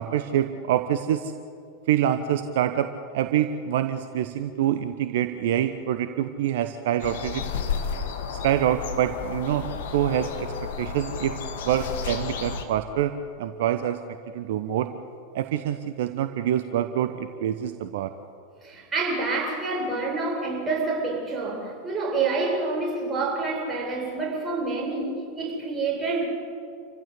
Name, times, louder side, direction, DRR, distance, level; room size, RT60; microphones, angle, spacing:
voice 1, 0.0-1.3 1.9-7.4 8.3-9.7 9.9-10.5 10.8-11.3 11.6-13.1 13.4-14.0 14.3-14.9 15.3-18.1, right 11 dB, 55° right, 9 dB, 1.0 m, -26 dB
sound 1, 7.0-12.6, left 6 dB, 60° left, 2.5 m, -32 dB
voice 2, 18.6-26.3, right 3 dB, 15° right, -2 dB, 8.0 m, -27 dB
28.0 x 15.5 x 8.4 m, 2.3 s
figure-of-eight pair, 90°, 0 cm